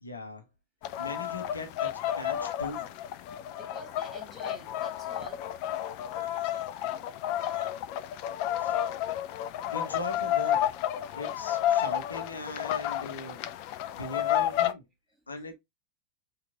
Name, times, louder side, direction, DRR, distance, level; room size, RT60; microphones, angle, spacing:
voice 1, 0.0-0.5 1.0-2.9 8.6-8.8 9.7-10.6 11.1-13.4 13.9-14.8 15.3-15.5, left 2 dB, 80° left, 0.8 m, -39 dB
sound 1, 0.8-14.7, left 11 dB, 45° left, 0.3 m, -31 dB
voice 2, 3.6-5.5 15.4-15.5, right 2 dB, 5° right, 1.3 m, -48 dB
3.0 x 2.4 x 3.5 m
figure-of-eight pair, 90°, 0 cm